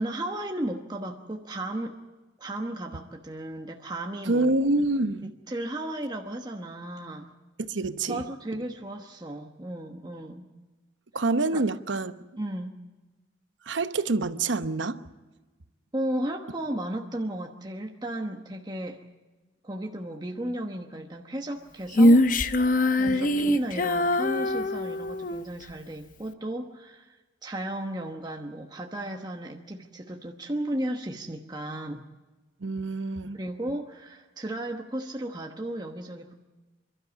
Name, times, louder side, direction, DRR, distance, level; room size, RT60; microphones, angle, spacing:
voice 1, 0.0-2.0 2.4-4.6 5.2-7.3 8.1-10.5 11.5-11.6 12.4-12.7 15.9-19.0 19.6-22.3 23.0-27.2 27.4-32.0 33.3-36.3, right 1 dB, 20° right, 2 dB, 1.1 m, -34 dB
voice 2, 4.3-5.3 7.6-8.2 11.1-12.1 13.7-15.0 23.0-23.6 32.6-33.4, right 2 dB, 85° right, 11 dB, 0.9 m, -27 dB
Female singing, 21.9-25.5, left 1 dB, 45° left, 0.8 m, -22 dB
28.0 x 12.5 x 8.0 m, 1.2 s
head